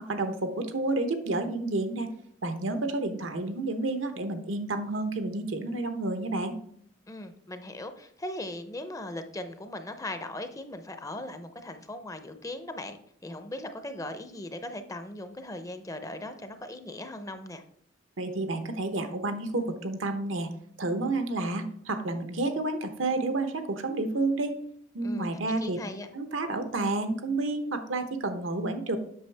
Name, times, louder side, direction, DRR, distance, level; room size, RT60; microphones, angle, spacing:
voice 1, 0.1-2.1 2.4-6.5 18.2-20.5 20.8-24.6 24.9-25.8 26.1-29.0, right 2 dB, 80° right, 8 dB, 0.9 m, -30 dB
voice 2, 7.1-17.6 25.0-25.3 25.6-26.1, left 1 dB, 15° left, 9 dB, 0.6 m, -39 dB
8.2 x 6.2 x 3.4 m, 0.65 s
head